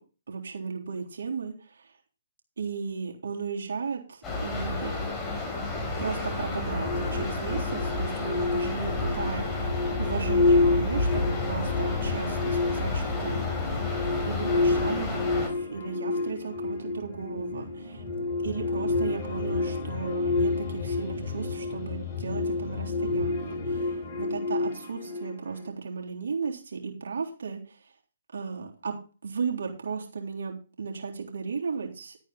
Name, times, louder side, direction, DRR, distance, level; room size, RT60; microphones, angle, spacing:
voice 1, 0.3-1.9 2.6-4.9 6.0-13.8 14.2-18.0 18.4-27.9 28.3-29.0 29.2-32.2, right 5 dB, 70° right, 0 dB, 3.5 m, -35 dB
sound 1, 4.2-15.5, left 2 dB, 15° left, 4.7 m, -31 dB
sound 2, 6.8-25.7, left 3 dB, 35° left, 5.8 m, -29 dB
12.0 x 9.0 x 4.1 m, 0.35 s
hypercardioid pair, 135°, 0 cm